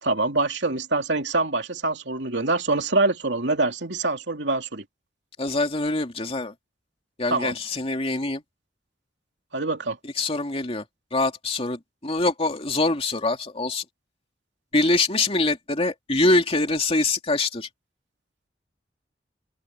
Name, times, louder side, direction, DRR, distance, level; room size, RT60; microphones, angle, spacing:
voice 1, 0.0-4.8 7.3-7.6 9.5-10.0, right 2 dB, 75° right, 3.1 m, -25 dB
voice 2, 5.4-6.5 7.2-8.4 10.2-10.8 11.1-13.8 14.7-17.7, left 2 dB, 35° left, 2.8 m, -24 dB
open air
head